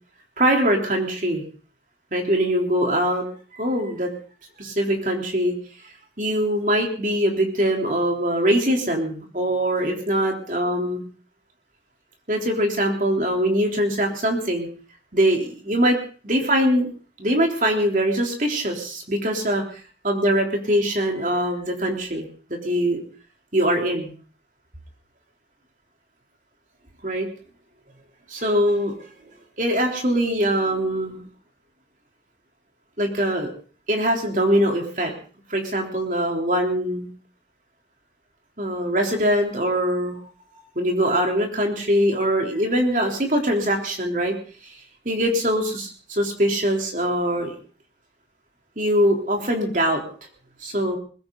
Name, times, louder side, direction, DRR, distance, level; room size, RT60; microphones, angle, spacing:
voice 1, 0.4-1.4 2.1-3.3 3.5-4.1 4.6-5.5 6.2-11.0 12.3-14.7 15.1-16.0 16.2-16.9 17.2-19.6 20.0-23.0 23.5-24.1 27.0-27.3 28.3-29.0 29.6-31.2 33.0-33.5 33.9-35.1 35.5-37.1 38.6-40.2 40.8-44.4 44.6-44.7 45.1-47.5 48.8-50.0 50.6-51.0, equal, 45° right, 2 dB, 3.6 m, -22 dB
21.0 x 16.0 x 4.0 m, 0.41 s
head